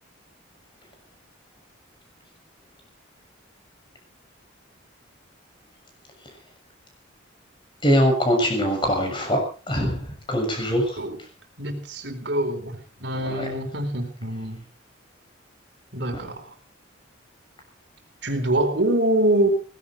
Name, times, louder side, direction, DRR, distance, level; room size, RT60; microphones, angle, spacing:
voice 1, 7.8-9.4 9.7-11.0 13.3-13.4, equal, 25° left, 4 dB, 6.8 m, -22 dB
voice 2, 11.6-14.6 15.9-16.6 18.2-19.5, right 1 dB, 60° right, 6 dB, 4.3 m, -25 dB
18.5 x 15.5 x 4.5 m, 0.37 s
head